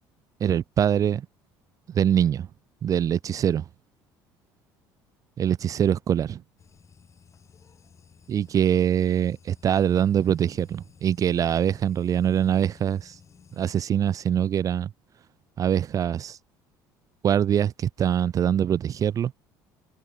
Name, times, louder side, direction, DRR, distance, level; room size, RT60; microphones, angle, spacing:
voice 1, 0.4-1.2 1.9-2.5 2.8-3.6 5.4-6.4 8.3-13.2 13.6-14.9 15.6-16.4 17.2-19.3, right 9 dB, 40° right, 0.4 m, -23 dB
sound 1, 6.6-13.7, left 6 dB, 35° left, 5.5 m, -55 dB
supercardioid pair, 85°, 9 cm